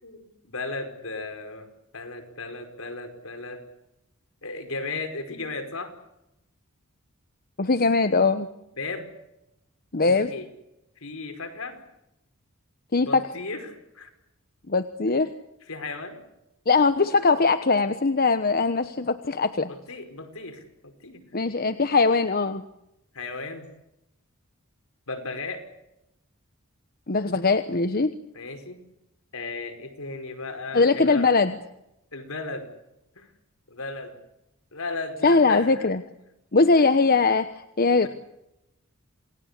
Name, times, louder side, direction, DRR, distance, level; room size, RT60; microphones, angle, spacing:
voice 1, 0.0-3.6 4.4-5.9 8.8-9.1 10.2-10.5 11.0-11.8 13.0-14.1 15.7-16.2 19.7-21.2 23.1-23.7 25.1-25.6 28.3-28.8 29.3-31.3 32.1-32.7 33.2-33.3 33.7-34.2 34.7-35.9 36.8-36.9 38.0-38.1, left 3 dB, 70° left, 7 dB, 5.2 m, -35 dB
voice 2, 7.6-8.5 9.9-10.3 12.9-13.3 14.7-15.3 16.7-19.7 21.3-22.6 27.1-28.1 30.7-31.6 35.2-36.0 36.5-37.5 37.8-38.1, left 4 dB, 45° left, 10 dB, 1.1 m, -21 dB
28.5 x 20.0 x 8.4 m, 0.86 s
head